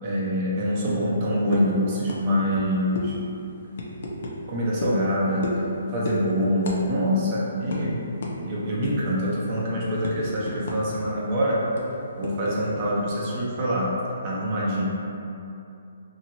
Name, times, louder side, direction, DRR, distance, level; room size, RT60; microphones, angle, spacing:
voice 1, 0.0-3.2 4.5-5.6 5.9-8.0 8.4-11.6 12.2-14.0 14.2-14.8, equal, 30° right, -6 dB, 0.7 m, -25 dB
sound 1, 1.5-1.7 2.1-2.2 2.5-2.6 3.0-3.1 3.8-4.4 4.8-5.0 5.4-5.7 6.0-6.2 6.6-6.8 7.1-7.2 7.7-7.8 8.2-8.4 8.8-9.1 9.5-11.0 11.2-11.4 11.8-12.7, left 2 dB, 60° left, 0.5 m, -32 dB
2.9 x 2.7 x 2.7 m, 2.7 s
hypercardioid pair, 155°, 0 cm